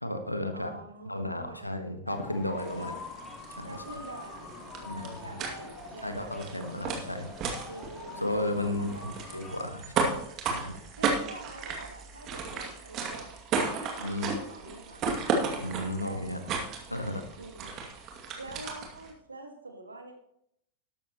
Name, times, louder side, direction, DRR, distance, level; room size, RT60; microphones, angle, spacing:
voice 1, 0.0-0.7 1.1-2.9 3.5-3.8 4.8-5.4 6.0-7.3 8.2-10.2 10.5-10.8 14.0-14.4 15.6-16.4 16.9-17.2, left 1 dB, 85° left, 7 dB, 1.3 m, -34 dB
voice 2, 0.5-1.7 2.8-3.0 3.7-6.3 7.7-9.2 11.0-13.3 13.8-15.6 16.0-16.6 17.4-17.7 18.4-20.1, right 2 dB, 80° right, 5 dB, 1.8 m, -46 dB
sound 1, 2.1-9.6, left 4 dB, 25° left, 2.6 m, -45 dB
sound 2, 2.6-19.1, right 4 dB, 35° right, 2.3 m, -35 dB
sound 3, 3.2-3.4 6.3-6.6 9.4-9.6 12.5-12.8, equal, ahead, 2.5 m, -54 dB
13.0 x 12.0 x 3.0 m, 0.75 s
figure-of-eight pair, 90°, 0 cm